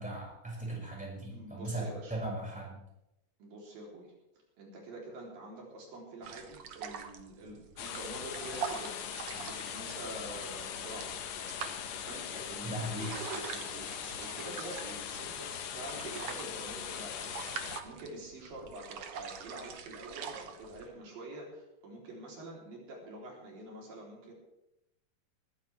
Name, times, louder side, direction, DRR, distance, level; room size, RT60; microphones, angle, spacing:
voice 1, 0.0-2.8 12.6-13.2, right 1 dB, ahead, -3 dB, 6.0 m, -38 dB
voice 2, 1.3-2.2 3.4-4.1 4.6-11.3 12.1-24.3, right 1 dB, 85° right, -2 dB, 5.3 m, -47 dB
sound 1, 6.2-20.9, right 7 dB, 60° right, 1.6 m, -44 dB
sound 2, 7.8-17.8, left 8 dB, 65° left, 2.0 m, -40 dB
20.5 x 15.0 x 3.5 m, 0.85 s
omnidirectional pair, 3.9 m